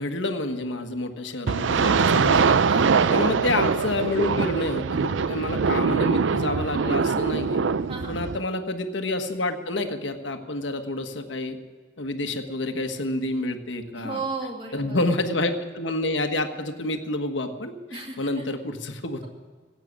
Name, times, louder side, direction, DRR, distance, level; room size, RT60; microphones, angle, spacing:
voice 1, 0.0-2.5 3.1-7.6 8.1-11.6 12.0-14.2 14.7-19.2, left 2 dB, 80° left, 6 dB, 1.4 m, -28 dB
sound 1, 1.5-8.4, right 5 dB, 85° right, 0.5 m, -23 dB
voice 2, 2.7-3.0 7.9-8.2 13.9-15.1 17.9-18.4, right 3 dB, 30° right, 1 dB, 2.6 m, -34 dB
15.5 x 8.8 x 9.8 m, 1.5 s
head